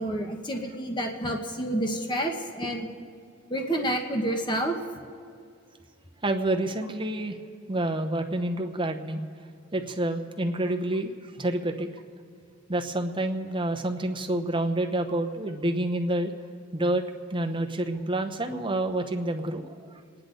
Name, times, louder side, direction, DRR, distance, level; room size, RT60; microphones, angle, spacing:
voice 1, 0.0-2.9 3.5-4.8, right 1 dB, 20° left, 3 dB, 1.1 m, -29 dB
voice 2, 6.2-7.4 7.7-9.2 9.7-11.9 12.7-16.3 16.7-17.0 17.3-19.8, right 1 dB, 25° right, 4 dB, 0.9 m, -28 dB
28.5 x 10.0 x 3.9 m, 2.2 s
head